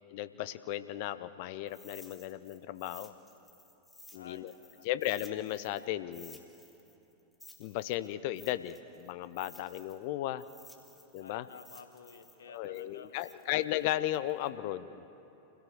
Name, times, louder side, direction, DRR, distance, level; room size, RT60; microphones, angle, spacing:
voice 1, 0.1-3.1 4.1-4.5 4.8-6.4 7.6-10.4 11.1-11.5 12.5-15.0, left 13 dB, 50° left, 14 dB, 0.7 m, -35 dB
sound 1, 1.7-5.9 6.1-10.1 10.4-14.5, left 2 dB, 5° left, 1.8 m, -56 dB
voice 2, 4.1-4.9 11.2-13.5, left 6 dB, 65° left, 9 dB, 1.2 m, -52 dB
26.0 x 16.5 x 6.9 m, 2.9 s
figure-of-eight pair, 90°, 0 cm